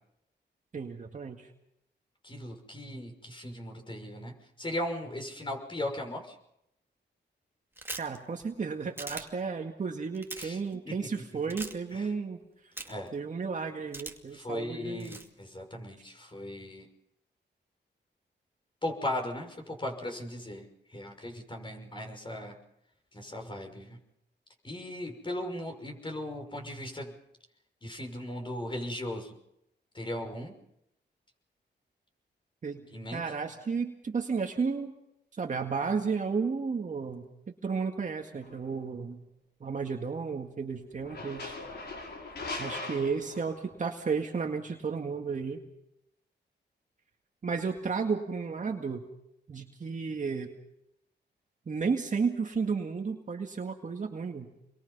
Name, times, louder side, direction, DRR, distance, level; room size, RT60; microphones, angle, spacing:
voice 1, 0.7-1.5 8.0-12.4 13.1-15.2 32.6-32.9 33.1-34.9 35.4-37.3 37.6-39.3 39.6-41.6 42.6-45.6 47.4-49.0 49.5-50.5 51.7-54.5, right 5 dB, 40° right, 2 dB, 2.0 m, -33 dB
voice 2, 2.2-6.3 10.4-10.6 10.8-10.9 11.5-11.6 11.9-12.1 12.9-13.1 14.3-16.9 18.8-22.6 23.1-24.0 24.6-27.1 27.8-29.3 29.9-30.5 32.9-33.2, left 1 dB, 25° left, 4 dB, 5.7 m, -37 dB
sound 1, 7.8-8.2 9.0-9.2 10.1-10.5 11.5-11.7 12.8-13.1 13.9-14.4 15.0-15.3, right 2 dB, 10° right, 2.4 m, -40 dB
sound 2, 38.4-38.7 40.9-43.8, left 2 dB, 60° left, 6.0 m, -40 dB
27.5 x 22.5 x 5.6 m, 0.81 s
cardioid pair, 100°, 19 cm